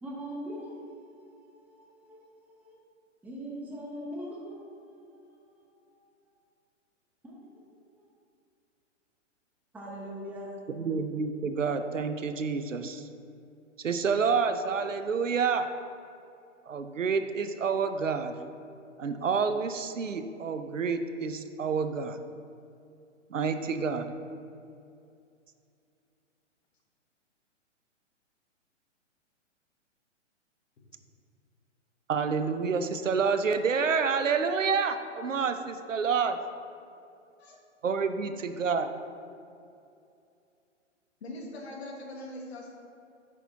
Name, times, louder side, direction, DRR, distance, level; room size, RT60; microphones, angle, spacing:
voice 1, 0.0-0.9 2.1-2.2 3.2-4.6 9.7-10.5, equal, 5° right, -4 dB, 0.9 m, -39 dB
voice 2, 10.7-13.0 13.8-15.7 16.7-18.3 19.0-22.2 23.3-24.1 32.1-36.4 37.8-38.9, right 5 dB, 80° right, 9 dB, 0.6 m, -28 dB
voice 3, 41.2-42.7, left 1 dB, 55° left, -1 dB, 1.7 m, -42 dB
8.9 x 6.0 x 2.7 m, 2.5 s
figure-of-eight pair, 120°, 38 cm